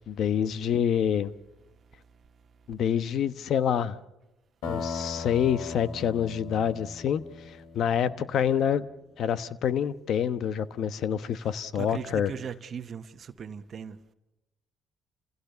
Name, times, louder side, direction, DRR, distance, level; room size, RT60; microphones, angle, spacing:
voice 1, 0.1-1.3 2.7-4.0 4.7-7.2 7.5-8.8 9.2-12.3, left 8 dB, 65° left, 1.0 m, -27 dB
sound 1, 4.6-8.4, left 5 dB, 85° left, 2.7 m, -38 dB
voice 2, 11.7-14.0, right 7 dB, 50° right, 1.2 m, -38 dB
29.0 x 16.5 x 6.8 m
supercardioid pair, 75°, 0 cm